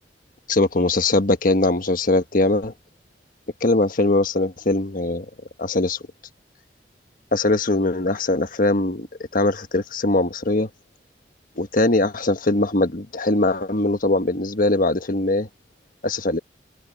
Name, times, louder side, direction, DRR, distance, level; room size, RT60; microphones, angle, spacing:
voice 1, 0.5-2.7 3.6-5.2 5.6-6.0 7.3-9.1 9.3-10.7 11.6-15.5 16.0-16.4, left 2 dB, 50° left, 1.4 m, -21 dB
head